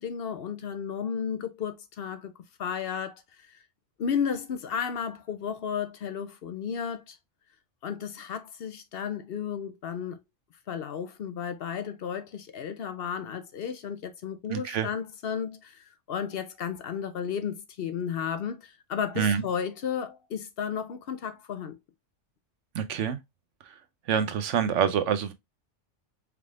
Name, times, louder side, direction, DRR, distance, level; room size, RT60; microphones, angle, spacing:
voice 1, 0.0-2.3 2.6-3.6 4.0-7.2 7.8-10.2 10.7-21.8, left 7 dB, 60° left, 0.7 m, -33 dB
voice 2, 14.5-14.9 19.2-19.4 22.7-23.2 23.6-23.8 24.1-25.3, right 8 dB, 85° right, 1.0 m, -26 dB
4.7 x 3.4 x 2.4 m
omnidirectional pair, 1.2 m